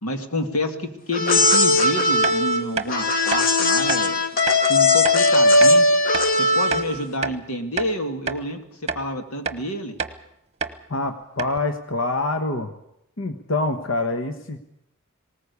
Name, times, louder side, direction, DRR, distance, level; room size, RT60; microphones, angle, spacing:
voice 1, 0.0-4.3 4.6-5.9 6.3-8.6 8.9-10.0, left 1 dB, 90° left, 6 dB, 2.3 m, -28 dB
sound 1, 1.1-7.0, left 2 dB, 40° left, 1.3 m, -18 dB
sound 2, 2.2-2.4 2.8-2.9 3.3-3.4 3.9-4.0 4.5-4.6 5.0-5.2 5.6-5.8 6.1-6.3 6.7-7.4 7.8-7.9 8.3-8.4 8.9-9.1 9.4-9.6 10.0-10.2 10.6-10.8 11.0-11.1 11.4-11.6, right 5 dB, 30° right, 1.0 m, -28 dB
voice 2, 10.9-12.7 13.2-14.6, left 2 dB, 65° left, 7 dB, 1.3 m, -25 dB
19.5 x 19.0 x 8.4 m, 0.81 s
head